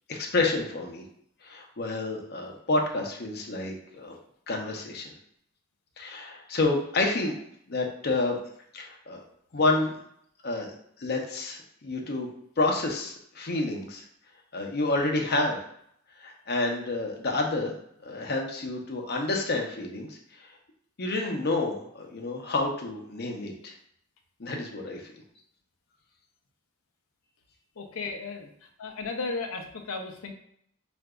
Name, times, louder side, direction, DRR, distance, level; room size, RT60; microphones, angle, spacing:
voice 1, 0.1-1.0 1.4-4.1 4.5-5.1 6.0-7.4 7.7-8.4 8.7-9.2 9.5-10.0 10.4-10.7 11.0-12.3 12.6-14.0 14.5-15.6 16.2-17.7 18.0-20.1 21.0-23.7 24.4-25.0, left 2 dB, 50° left, 1 dB, 0.7 m, -29 dB
voice 2, 27.8-28.5 28.8-30.3, left 3 dB, 90° left, 4 dB, 0.6 m, -34 dB
4.8 x 2.5 x 2.3 m, 0.68 s
head